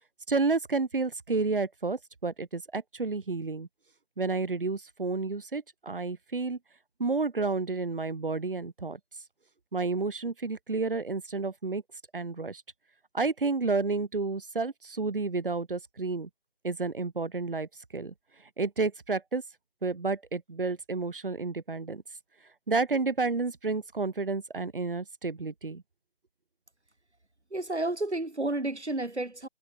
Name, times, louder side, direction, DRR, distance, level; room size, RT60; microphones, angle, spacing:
voice 1, 0.3-3.7 4.2-6.6 7.0-9.0 9.7-11.8 12.1-12.6 13.1-16.3 16.6-18.1 18.6-19.4 19.8-22.0 22.7-25.8, right 3 dB, 55° right, 1.5 m, -30 dB
voice 2, 27.5-29.5, right 2 dB, 90° right, 4.3 m, -31 dB
figure-of-eight pair, 165°, 33 cm